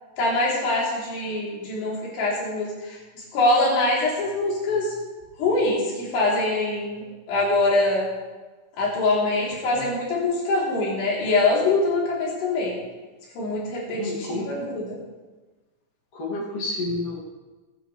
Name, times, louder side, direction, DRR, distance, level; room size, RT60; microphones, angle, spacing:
voice 1, 0.2-4.9 5.4-8.1 8.8-12.8 13.3-15.0, left 2 dB, 85° left, -6 dB, 5.7 m, -24 dB
voice 2, 13.9-14.5 16.1-17.2, left 2 dB, 55° left, -6 dB, 3.9 m, -30 dB
21.5 x 9.4 x 3.3 m, 1.2 s
omnidirectional pair, 4.7 m